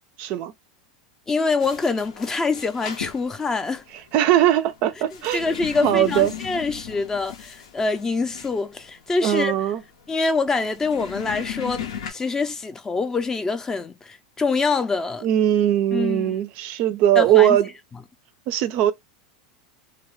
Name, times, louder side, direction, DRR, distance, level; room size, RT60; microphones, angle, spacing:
voice 1, 0.2-0.5 4.1-5.4 5.8-6.3 9.2-9.8 15.2-17.7 18.5-18.9, right 12 dB, 50° right, 0.4 m, -20 dB
voice 2, 1.3-3.8 5.3-9.5 10.1-15.3 15.9-16.3 17.2-17.6, left 4 dB, 15° left, 0.4 m, -25 dB
sound 1, 1.6-12.1, left 8 dB, 85° left, 0.7 m, -37 dB
2.2 x 2.1 x 3.0 m
supercardioid pair, 120°, 3 cm